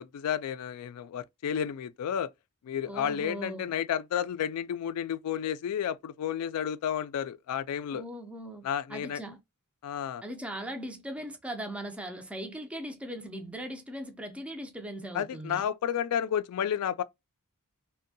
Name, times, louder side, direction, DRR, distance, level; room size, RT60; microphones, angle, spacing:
voice 1, 0.0-2.3 2.6-8.0 8.6-9.2 9.8-10.2 15.1-17.0, left 9 dB, 75° left, 0.3 m, -31 dB
voice 2, 2.9-3.7 7.9-8.6 8.9-9.4 10.2-15.6, right 1 dB, 5° right, 0.4 m, -39 dB
2.6 x 2.1 x 2.6 m
head